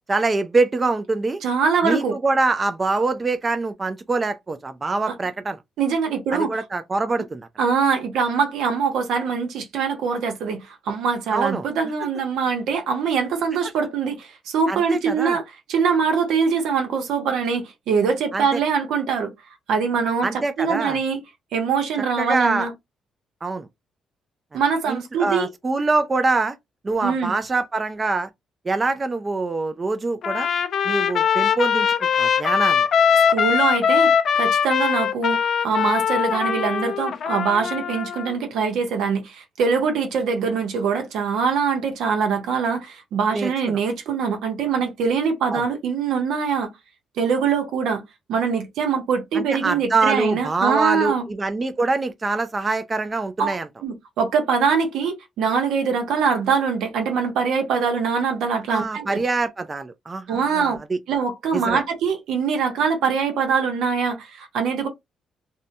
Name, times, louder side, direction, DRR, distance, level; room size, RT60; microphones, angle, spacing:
voice 1, 0.1-1.4 1.8-5.6 6.3-7.5 11.3-11.6 14.7-15.4 18.3-18.6 20.2-21.0 22.2-22.7 23.4-23.7 24.9-26.6 26.8-28.3 28.6-30.5 30.8-31.9 32.2-32.9 43.3-43.8 45.5-45.6 49.3-53.7 58.7-61.0 61.5-61.8, right 3 dB, 30° right, 0.4 m, -24 dB
voice 2, 1.4-2.2 5.1-5.2 5.8-6.5 7.6-19.3 19.7-20.3 20.6-21.2 21.5-22.7 24.5-25.5 27.0-27.3 33.3-46.7 47.2-48.0 48.3-51.2 53.4-53.5 53.8-59.2 60.3-60.8 61.1-64.9, right 6 dB, 80° right, 0.8 m, -23 dB
Trumpet, 30.2-38.4, left 7 dB, 55° left, 0.3 m, -21 dB
2.7 x 2.1 x 2.6 m
cardioid pair, 90°, 0 cm